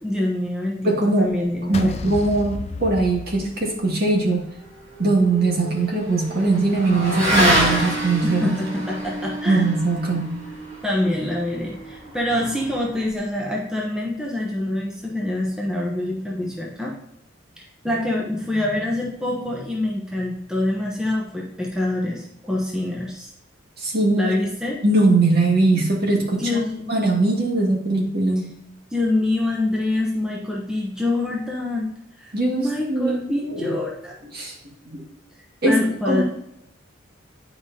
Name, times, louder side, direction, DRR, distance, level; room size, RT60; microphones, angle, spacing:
voice 1, 0.0-0.9 1.2-2.0 8.2-9.7 10.8-16.9 17.6-23.3 24.2-24.8 26.4-26.9 28.9-31.9 32.2-34.2 35.7-36.2, left 1 dB, 5° right, -3 dB, 0.9 m, -25 dB
voice 2, 0.8-1.3 1.7-4.4 5.0-8.5 9.5-10.4 23.8-24.3 24.8-26.6 26.9-28.5 32.3-33.8 34.3-34.5 34.9-35.0 35.6-35.8 36.1-36.2, right 2 dB, 50° right, -2 dB, 1.9 m, -21 dB
sound 1, 1.7-4.1, left 3 dB, 30° left, 0.4 m, -32 dB
Motorcycle / Accelerating revving vroom, 4.4-13.1, equal, 35° right, 2.0 m, -27 dB
9.5 x 4.9 x 2.8 m, 0.80 s
head